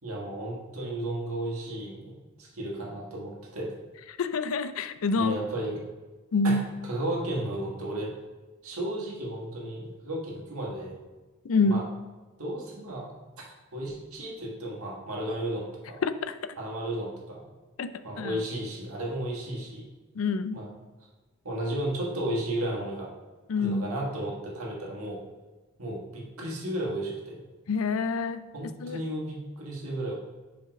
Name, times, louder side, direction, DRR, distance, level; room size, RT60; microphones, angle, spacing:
voice 1, 0.0-3.7 5.1-5.8 6.4-6.6 6.9-8.1 8.6-11.0 11.6-11.8 12.4-13.1 13.7-16.0 16.6-17.4 18.0-19.8 20.5-20.7 21.4-23.1 23.6-25.2 25.8-27.4 28.5-30.1, right 1 dB, 85° right, -2 dB, 1.7 m, -33 dB
voice 2, 4.1-5.4 6.3-6.6 11.4-11.9 16.0-16.6 17.8-17.9 18.2-18.4 20.2-20.6 23.5-23.9 27.7-28.4 28.8-29.0, left 3 dB, 70° left, 12 dB, 0.4 m, -27 dB
5.0 x 4.9 x 5.1 m, 1.2 s
head